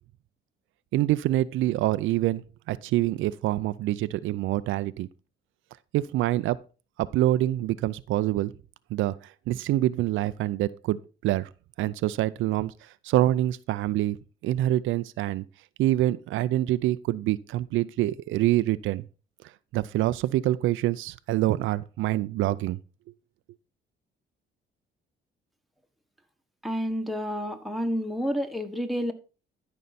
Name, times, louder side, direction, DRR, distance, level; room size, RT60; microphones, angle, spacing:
voice 1, 0.9-5.1 5.9-6.6 7.0-8.5 8.9-9.2 9.5-11.5 11.8-12.7 13.0-14.2 14.4-15.4 15.8-19.0 19.7-22.8, right 15 dB, 85° right, 0.4 m, -26 dB
voice 2, 26.6-29.1, equal, ahead, 1.4 m, -29 dB
13.0 x 5.5 x 4.1 m
cardioid pair, 90°, 20 cm